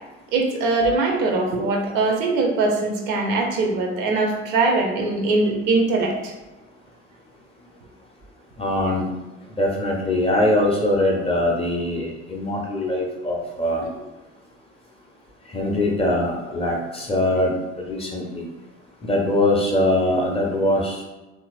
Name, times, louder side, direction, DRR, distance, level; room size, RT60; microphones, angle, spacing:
voice 1, 0.3-6.3, right 3 dB, 55° right, 2 dB, 0.6 m, -21 dB
voice 2, 8.6-9.1 9.6-13.8 15.5-18.5 19.0-21.0, left 1 dB, 15° left, -1 dB, 0.5 m, -22 dB
2.8 x 2.4 x 2.3 m, 1.1 s
figure-of-eight pair, 55°, 36 cm